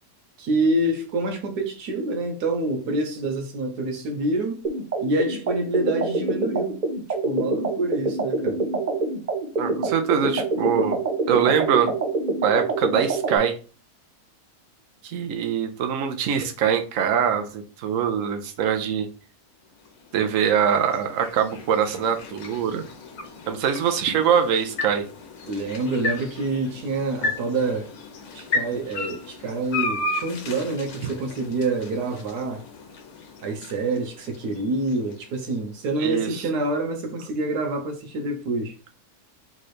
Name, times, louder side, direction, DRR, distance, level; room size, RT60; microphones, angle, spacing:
voice 1, 0.4-4.6 5.0-6.8 7.2-8.6 25.5-27.9 28.3-32.6 33.4-38.8, right 2 dB, 90° right, 1.5 m, -27 dB
sound 1, 4.6-13.4, right 3 dB, 40° right, 0.7 m, -26 dB
voice 2, 9.6-11.0 11.3-11.9 12.4-13.5 15.0-19.1 20.1-22.8 23.5-25.0 31.0-31.1 36.0-36.3, right 8 dB, 60° right, 1.1 m, -23 dB
sound 2, 19.7-35.9, left 3 dB, 70° left, 1.3 m, -35 dB
3.8 x 3.2 x 4.2 m
omnidirectional pair, 1.6 m